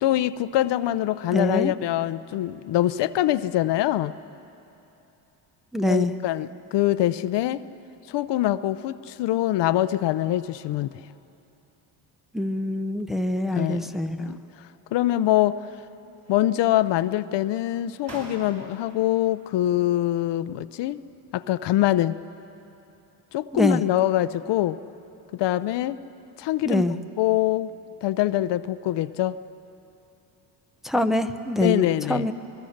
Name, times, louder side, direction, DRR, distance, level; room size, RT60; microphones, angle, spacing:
voice 1, 0.0-4.1 5.8-7.6 8.1-10.9 13.5-13.9 14.2-14.4 14.9-15.6 16.3-21.0 21.3-22.2 23.3-24.8 25.4-26.0 26.4-26.8 27.2-27.7 28.0-29.4 31.6-32.3, left 14 dB, 70° left, 14 dB, 0.7 m, -24 dB
voice 2, 1.3-1.7 5.7-6.1 12.3-14.3 23.5-23.8 26.6-27.0 30.8-32.3, left 1 dB, ahead, 7 dB, 0.7 m, -24 dB
sound 1, 14.2-14.8 15.2-15.9 16.2-17.0 17.6-17.7 18.0-19.0, right 2 dB, 35° right, 5.5 m, -45 dB
26.5 x 20.0 x 6.5 m, 2.9 s
cardioid pair, 110°, 44 cm